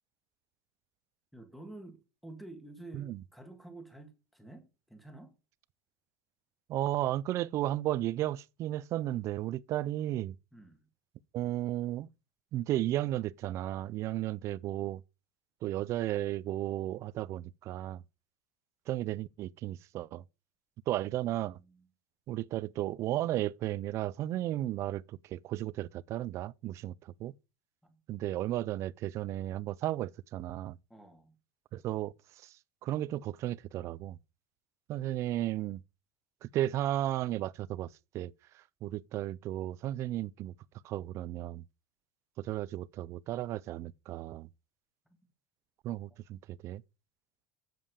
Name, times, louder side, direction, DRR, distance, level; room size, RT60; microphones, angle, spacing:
voice 1, 1.3-5.4 10.5-10.9 20.9-21.9 27.8-28.0 30.9-31.4, right 2 dB, ahead, 1.7 m, -50 dB
voice 2, 6.7-10.4 11.3-12.1 12.5-15.0 15.6-18.0 18.9-20.2 20.9-21.6 22.3-27.3 28.1-30.8 31.7-32.1 32.4-32.6 32.8-34.2 34.9-35.8 36.4-37.9 38.1-40.5 40.8-41.6 42.4-44.5 45.8-46.8, right 14 dB, 45° right, 0.4 m, -34 dB
7.6 x 7.2 x 4.9 m
supercardioid pair, 135°, 7 cm